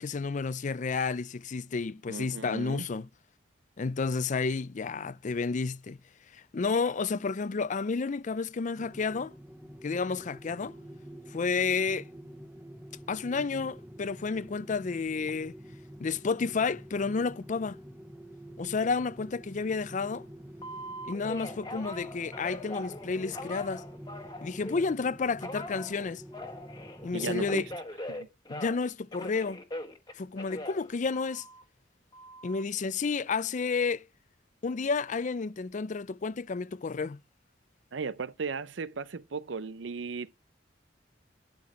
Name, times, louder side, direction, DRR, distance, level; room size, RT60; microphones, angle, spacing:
voice 1, 0.0-3.1 3.8-6.0 6.3-9.3 9.8-10.7 11.3-12.1 13.1-15.5 16.0-17.8 18.6-20.2 21.0-23.8 24.4-26.2 27.0-27.7 28.5-29.6 30.2-31.4 32.4-34.1 34.6-37.2, left 4 dB, 45° left, 0.5 m, -31 dB
voice 2, 2.1-2.9 27.1-27.6 28.1-28.3 37.9-40.3, right 4 dB, 90° right, 0.6 m, -36 dB
sound 1, 8.8-27.8, equal, 10° right, 0.7 m, -47 dB
Telephone, 20.6-24.9 25.4-28.9 29.1-31.6 32.1-32.6, left 1 dB, 25° left, 1.4 m, -42 dB
12.5 x 6.0 x 4.7 m
head